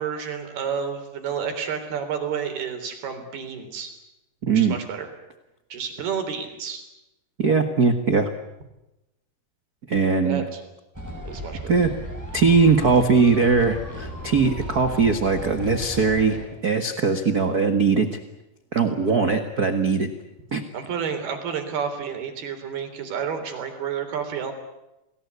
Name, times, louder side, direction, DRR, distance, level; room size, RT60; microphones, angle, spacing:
voice 1, 0.0-3.9 4.5-5.1 5.7-6.8 10.2-10.6 11.3-11.6 20.7-24.5, right 7 dB, 80° right, 7 dB, 5.6 m, -30 dB
voice 2, 4.4-4.8 7.4-8.3 9.9-10.4 11.7-11.9 12.3-18.2 18.7-20.1 20.5-20.6, right 5 dB, 55° right, 7 dB, 1.0 m, -20 dB
sound 1, 10.9-16.5, equal, 5° right, 5.4 m, -35 dB
29.5 x 20.0 x 8.3 m, 0.93 s
omnidirectional pair, 4.4 m